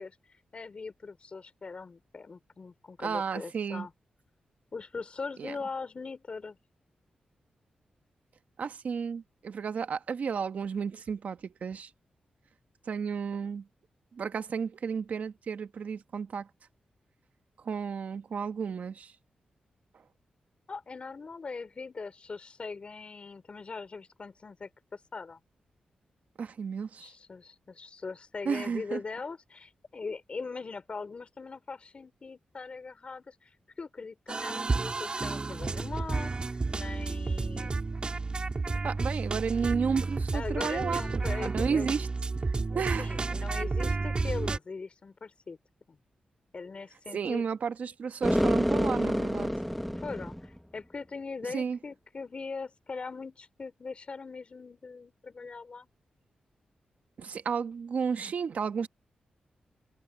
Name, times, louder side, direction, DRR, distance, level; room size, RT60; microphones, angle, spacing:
voice 1, 0.0-3.9 4.7-6.6 20.7-25.4 27.0-33.5 33.8-37.8 38.8-39.0 40.3-41.9 42.7-45.6 45.9-46.0 46.5-47.4 50.0-55.9, left 4 dB, 45° left, 3.9 m, -41 dB
voice 2, 3.0-3.9 5.4-5.5 8.6-11.9 12.9-13.7 14.1-16.5 17.6-19.1 26.4-27.1 28.4-29.0 38.8-42.1 42.4-43.1 47.1-49.5 51.5-51.8 57.2-58.9, right 6 dB, 65° right, 1.3 m, -32 dB
sound 1, 34.3-44.6, right 3 dB, 35° right, 3.9 m, -31 dB
sound 2, 48.2-50.6, equal, ahead, 1.3 m, -28 dB
cardioid pair, 85°, 3 cm